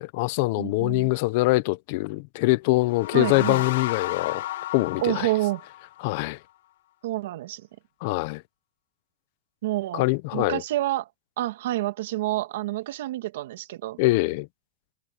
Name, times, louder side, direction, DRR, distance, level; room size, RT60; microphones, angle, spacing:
voice 1, 0.0-4.5 4.7-5.3 6.0-6.4 8.0-8.4 9.9-10.6 14.0-14.5, left 21 dB, 45° left, 0.7 m, -24 dB
voice 2, 0.6-1.1 3.1-3.6 5.0-5.6 7.0-7.6 9.6-10.0 10.3-11.1 11.4-14.0, right 16 dB, 70° right, 1.8 m, -28 dB
sound 1, 2.7-6.2, left 14 dB, 80° left, 2.5 m, -33 dB
supercardioid pair, 180°, 0 cm